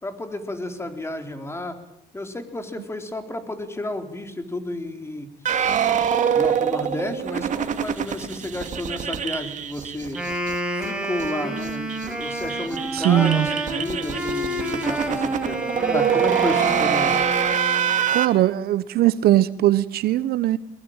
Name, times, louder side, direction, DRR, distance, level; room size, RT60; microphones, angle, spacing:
voice 1, 0.0-1.8 2.1-5.3 6.3-10.2 10.8-17.2, left 1 dB, 15° left, 4.1 m, -32 dB
sound 1, 5.5-10.6 10.8-10.9 11.2-11.3 11.6-18.3, right 8 dB, 45° right, 2.6 m, -24 dB
Wind instrument woodwind instrument, 10.0-18.1, equal, 5° right, 7.7 m, -29 dB
voice 2, 12.9-13.5 18.1-20.6, right 13 dB, 65° right, 1.1 m, -20 dB
23.0 x 22.5 x 9.0 m
cardioid pair, 110°, 17 cm